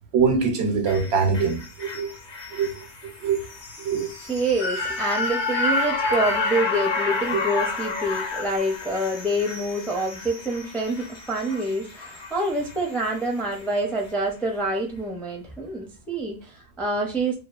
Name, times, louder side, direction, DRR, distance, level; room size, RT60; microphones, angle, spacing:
voice 1, 0.1-2.1 2.5-2.7 3.0-3.4 3.8-4.1, right 5 dB, 80° right, 0.9 m, -23 dB
sound 1, 0.9-13.2 13.5-13.6, left 3 dB, 55° left, 0.7 m, -30 dB
voice 2, 4.3-17.4, right 1 dB, ahead, 0.4 m, -27 dB
2.6 x 2.2 x 2.3 m
omnidirectional pair, 1.1 m